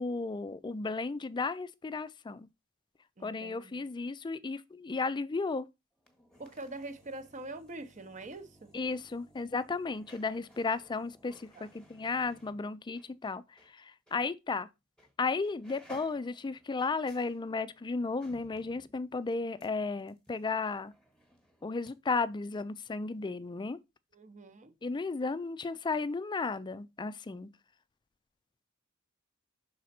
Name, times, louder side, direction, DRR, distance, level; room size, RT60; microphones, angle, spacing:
voice 1, 0.0-2.5 3.2-5.7 8.7-14.7 15.2-20.9 21.6-23.8 24.8-27.5, left 4 dB, 20° left, 0.4 m, -34 dB
voice 2, 3.2-3.8 6.4-8.8 11.3-11.7 24.1-24.7, right 2 dB, 35° right, 0.8 m, -44 dB
sound 1, 6.0-13.7 14.1-14.2 15.0-15.2 15.4-21.9 22.2-22.3, equal, 5° left, 1.2 m, -60 dB
6.2 x 4.1 x 4.3 m
head